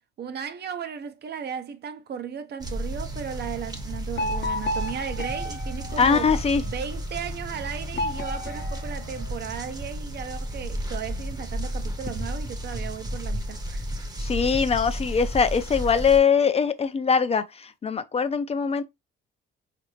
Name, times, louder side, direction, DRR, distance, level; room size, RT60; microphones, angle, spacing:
voice 1, 0.2-6.3 6.6-13.9, right 8 dB, 55° right, 0.6 m, -35 dB
sound 1, 2.6-16.2, equal, 20° right, 0.7 m, -33 dB
sound 2, 4.2-6.8 7.9-9.7, left 1 dB, 65° left, 0.7 m, -33 dB
voice 2, 6.0-6.6 14.2-18.8, left 6 dB, 30° left, 0.4 m, -22 dB
4.0 x 2.5 x 3.0 m
cardioid pair, 90°, 20 cm